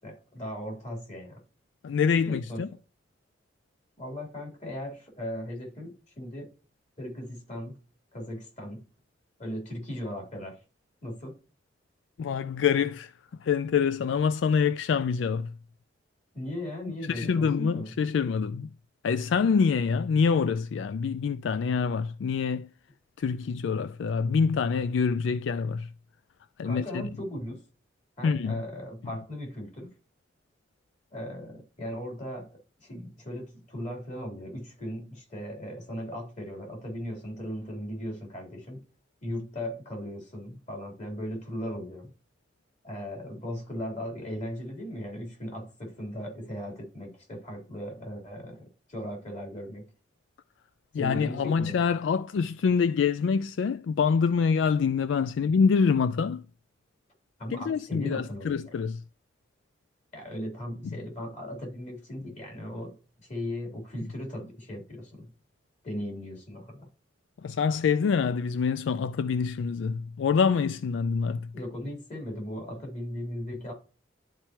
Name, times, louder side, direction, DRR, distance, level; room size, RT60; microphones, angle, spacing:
voice 1, 0.0-1.4 2.2-2.6 4.0-6.5 7.0-7.8 8.1-8.8 9.4-10.6 11.0-11.4 16.3-17.9 26.6-27.6 28.2-29.9 31.1-38.8 39.2-42.1 42.8-49.8 50.9-51.8 57.4-58.6 60.1-63.0 63.2-65.3 65.8-66.9 71.5-73.7, equal, 40° left, 3.4 m, -37 dB
voice 2, 1.8-2.7 12.2-13.1 13.4-15.5 17.0-18.7 19.0-22.7 23.2-25.9 26.6-27.1 28.2-28.6 50.9-56.4 57.5-59.0 67.4-71.5, left 6 dB, 80° left, 0.3 m, -26 dB
11.5 x 4.5 x 2.9 m
head